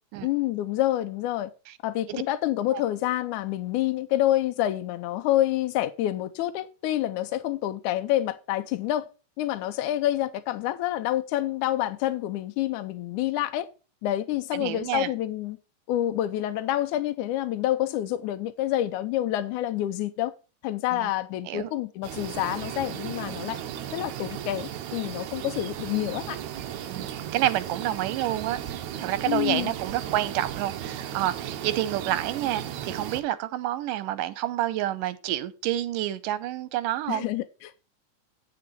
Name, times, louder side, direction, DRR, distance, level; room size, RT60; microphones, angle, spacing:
voice 1, 0.2-1.5 1.8-9.1 9.4-13.7 14.0-15.6 15.9-20.3 20.6-23.6 23.9-26.4 29.3-29.7 37.1-37.7, left 13 dB, 80° left, 2.0 m, -27 dB
voice 2, 14.5-15.1 20.9-21.1 21.5-21.7 26.9-28.6 29.0-37.3, right 13 dB, 90° right, 2.3 m, -29 dB
sound 1, 22.0-33.2, right 10 dB, 70° right, 2.1 m, -35 dB
9.3 x 7.9 x 4.2 m
omnidirectional pair, 3.8 m